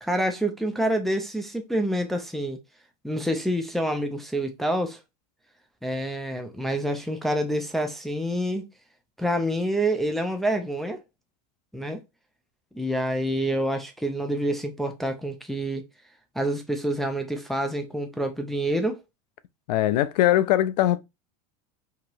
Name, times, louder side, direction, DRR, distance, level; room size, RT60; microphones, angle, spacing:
voice 1, 0.0-2.6 3.0-5.0 5.8-8.7 9.2-11.0 11.7-12.0 12.7-15.8 16.4-19.0, right 1 dB, ahead, 0.4 m, -27 dB
voice 2, 19.7-21.0, left 13 dB, 80° left, 0.4 m, -21 dB
2.9 x 2.8 x 2.6 m
supercardioid pair, 130°, 21 cm